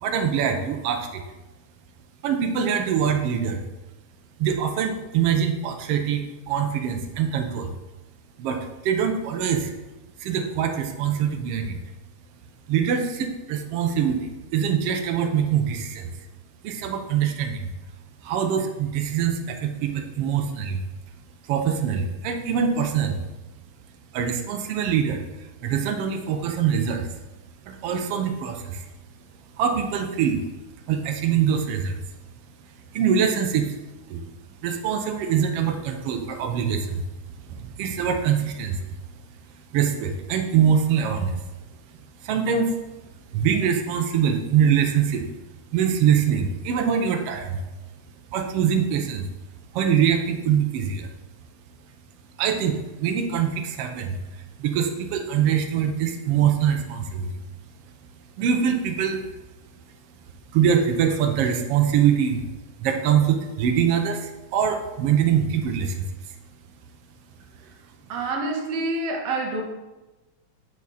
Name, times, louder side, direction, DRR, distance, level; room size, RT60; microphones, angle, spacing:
voice 1, 0.0-1.2 2.2-3.6 4.4-7.7 8.4-9.7 10.2-11.8 12.7-16.2 16.6-17.7 18.2-20.8 21.5-23.3 24.1-27.2 27.7-28.9 29.5-30.4 30.8-32.1 32.9-33.8 34.1-34.2 34.6-37.1 37.4-39.2 39.7-41.4 41.9-42.8 43.3-45.3 45.7-47.6 48.3-49.3 49.7-51.1 52.4-57.4 58.0-59.4 60.5-62.5 62.8-66.4, right 8 dB, 75° right, 5 dB, 1.4 m, -24 dB
voice 2, 68.1-69.6, right 2 dB, 60° right, 1 dB, 2.0 m, -27 dB
9.4 x 4.9 x 4.1 m, 1.1 s
omnidirectional pair, 3.5 m